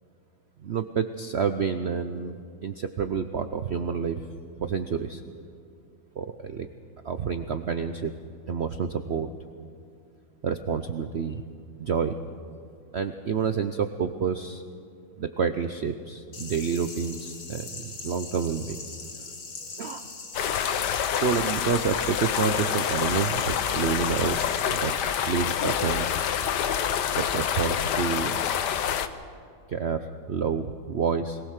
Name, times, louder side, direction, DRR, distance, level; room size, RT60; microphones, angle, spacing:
voice 1, 0.6-4.3 4.6-5.2 6.2-6.7 7.0-8.1 8.5-9.3 10.4-11.4 11.8-12.2 12.9-14.6 15.2-18.8 19.8-20.1 21.2-24.9 25.2-26.3 27.1-28.4 29.7-31.4, right 6 dB, 80° right, 9 dB, 0.5 m, -29 dB
sound 1, 16.3-24.6, left 4 dB, 45° left, 2.1 m, -41 dB
sound 2, 20.3-29.1, left 8 dB, 65° left, 1.4 m, -27 dB
22.0 x 19.0 x 6.5 m, 2.4 s
omnidirectional pair, 2.1 m